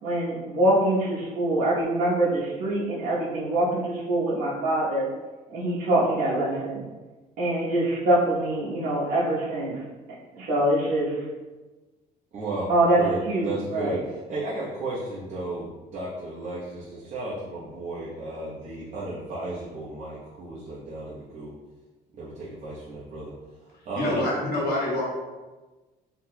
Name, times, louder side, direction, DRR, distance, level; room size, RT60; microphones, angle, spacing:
voice 1, 0.0-5.1 5.5-6.8 7.4-9.8 10.5-11.1 12.7-14.0, right 1 dB, 70° right, -11 dB, 1.1 m, -24 dB
voice 2, 12.3-12.7 13.0-21.5 22.1-23.3 23.8-24.3, right 2 dB, 45° right, -9 dB, 0.9 m, -34 dB
voice 3, 23.9-25.1, left 1 dB, 70° left, -5 dB, 1.3 m, -26 dB
4.3 x 2.8 x 2.2 m, 1.2 s
cardioid pair, 110°, 17 cm